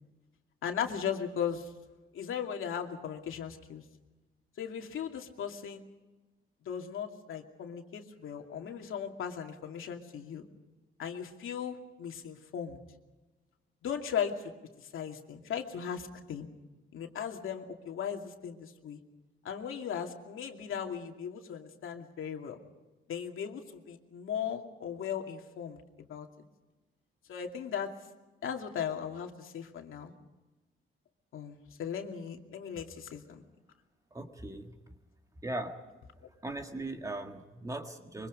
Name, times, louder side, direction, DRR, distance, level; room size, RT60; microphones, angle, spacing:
voice 1, 0.6-1.7 2.1-3.8 4.6-5.8 6.7-10.4 11.0-12.8 13.8-14.5 14.8-16.5 16.9-19.0 19.4-22.6 23.1-25.8 26.1-26.5 27.3-27.9 28.4-30.1 31.3-33.4, left 8 dB, 80° left, 3 dB, 2.5 m, -37 dB
voice 2, 34.1-34.8 35.4-35.8 36.4-38.3, right 2 dB, 15° right, 4 dB, 1.8 m, -39 dB
24.5 x 24.0 x 5.3 m, 1.1 s
wide cardioid pair, 165°, 21 cm